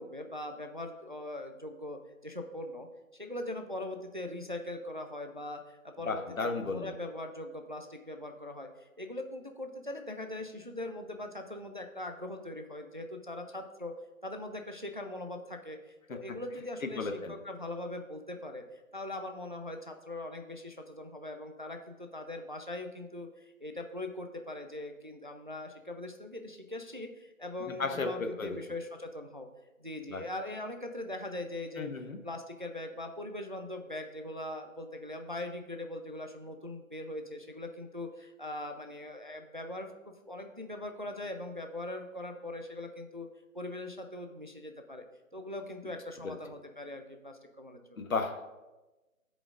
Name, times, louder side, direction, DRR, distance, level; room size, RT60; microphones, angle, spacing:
voice 1, 0.0-2.9 3.1-13.9 14.2-29.5 29.8-31.9 32.2-39.9 40.3-43.3 43.5-45.1 45.3-48.1, left 1 dB, 40° right, 5 dB, 0.4 m, -41 dB
voice 2, 6.0-6.9 16.9-17.3 27.8-28.6 30.1-30.2 31.8-32.2 46.2-46.4 48.0-48.4, left 4 dB, 75° left, 6 dB, 1.0 m, -34 dB
14.0 x 5.1 x 2.4 m, 1.1 s
figure-of-eight pair, 160°, 41 cm